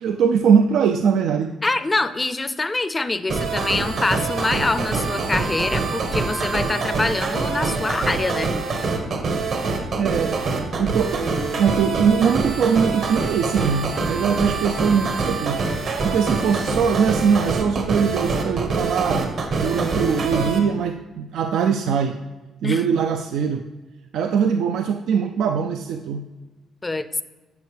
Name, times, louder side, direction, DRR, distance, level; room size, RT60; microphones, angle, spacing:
voice 1, 0.0-1.5 10.0-10.4 10.8-11.2 11.6-15.6 16.0-22.2 22.6-23.6 24.1-26.3, right 6 dB, 80° right, 6 dB, 0.4 m, -21 dB
voice 2, 1.6-8.5 22.6-22.8 26.8-27.1, left 2 dB, 20° left, 12 dB, 0.5 m, -24 dB
sound 1, 3.3-20.6, right 3 dB, 60° right, 1.1 m, -25 dB
11.0 x 7.0 x 3.3 m, 1.2 s
cardioid pair, 90°, 0 cm